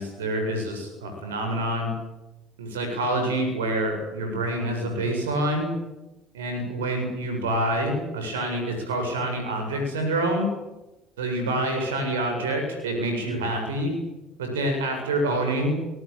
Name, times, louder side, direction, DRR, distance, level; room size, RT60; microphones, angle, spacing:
voice 1, 0.0-1.9 2.6-5.7 6.3-10.5 11.2-13.9 14.4-15.8, right 1 dB, 85° right, 5 dB, 7.7 m, -27 dB
27.0 x 21.5 x 9.0 m, 1.0 s
hypercardioid pair, 65°, 0 cm